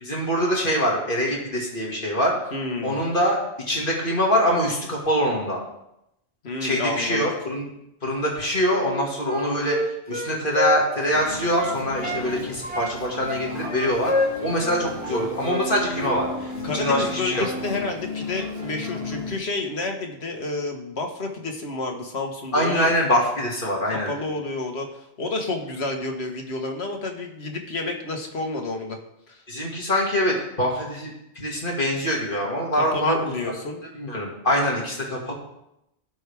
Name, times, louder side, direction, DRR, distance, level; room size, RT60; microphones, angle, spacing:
voice 1, 0.0-2.4 2.8-3.4 3.7-5.6 6.6-7.6 8.0-9.8 10.1-14.1 14.4-17.5 22.5-24.1 29.5-31.1 31.4-33.3 33.9-35.3, equal, 55° left, -2 dB, 2.5 m, -24 dB
voice 2, 2.5-3.0 6.4-7.3 16.6-22.9 23.8-29.0 29.3-29.4 32.7-33.8, left 2 dB, 90° left, 2 dB, 1.8 m, -30 dB
Wind instrument woodwind instrument, 8.8-12.3 12.6-15.7 16.0-16.2, left 1 dB, 10° right, 1.1 m, -28 dB
sound 1, 11.1-19.4, left 2 dB, 75° right, 2.2 m, -34 dB
16.5 x 6.3 x 3.5 m, 0.83 s
omnidirectional pair, 1.1 m